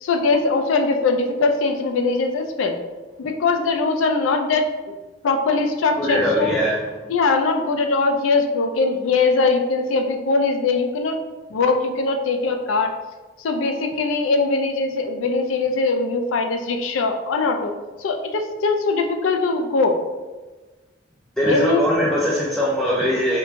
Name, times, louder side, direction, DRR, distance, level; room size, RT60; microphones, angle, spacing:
voice 1, 0.0-2.8 3.2-5.0 5.2-6.5 7.1-11.2 11.5-12.9 13.4-17.7 18.0-20.0 21.4-21.8, left 3 dB, 80° left, 5 dB, 0.4 m, -21 dB
voice 2, 6.0-6.9 21.4-23.4, equal, 5° left, -7 dB, 0.3 m, -21 dB
4.5 x 2.2 x 2.5 m, 1.3 s
head